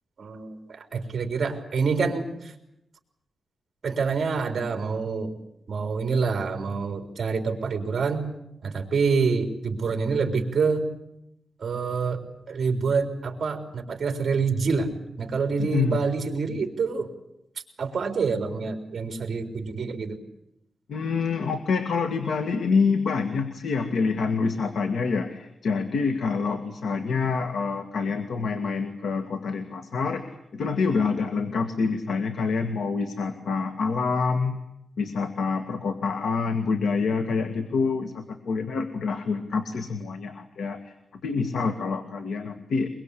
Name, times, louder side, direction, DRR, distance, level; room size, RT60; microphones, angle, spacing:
voice 1, 0.2-2.5 3.8-5.3 5.7-8.3 8.6-10.9 11.6-17.1 17.8-20.2, right 5 dB, 45° right, 5 dB, 3.9 m, -27 dB
voice 2, 15.6-16.0 20.9-34.6 35.0-40.9 41.2-42.9, left 4 dB, 85° left, 7 dB, 2.0 m, -27 dB
23.0 x 23.0 x 8.4 m, 0.82 s
wide cardioid pair, 180°, 0 cm